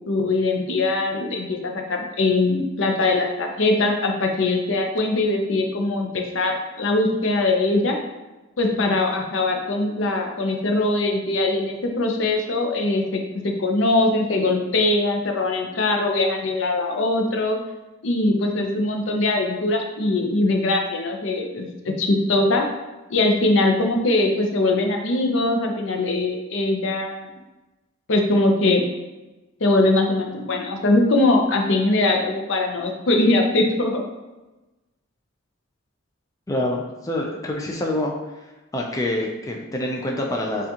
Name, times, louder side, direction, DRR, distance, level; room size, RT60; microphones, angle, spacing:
voice 1, 0.0-8.0 8.6-17.6 18.0-22.7 23.1-27.3 28.1-28.8 29.6-34.0, left 2 dB, 70° left, 2 dB, 0.6 m, -21 dB
voice 2, 36.5-38.1 38.7-40.7, left 1 dB, 15° left, -1 dB, 0.4 m, -26 dB
6.8 x 2.4 x 2.8 m, 1.1 s
head